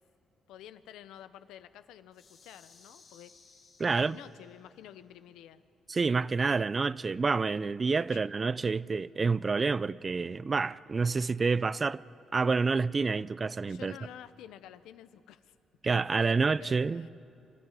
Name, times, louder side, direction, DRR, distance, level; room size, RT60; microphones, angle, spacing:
voice 1, 0.5-3.4 3.8-5.6 8.1-8.2 8.5-8.6 13.7-15.5 15.9-17.1, left 11 dB, 90° left, 0.7 m, -50 dB
sound 1, 2.1-4.7, left 4 dB, 60° left, 4.9 m, -59 dB
voice 2, 3.8-4.2 5.9-12.0 12.3-13.9 15.8-17.1, right 4 dB, 30° right, 0.4 m, -28 dB
26.5 x 12.5 x 9.1 m
cardioid pair, 90°, 0 cm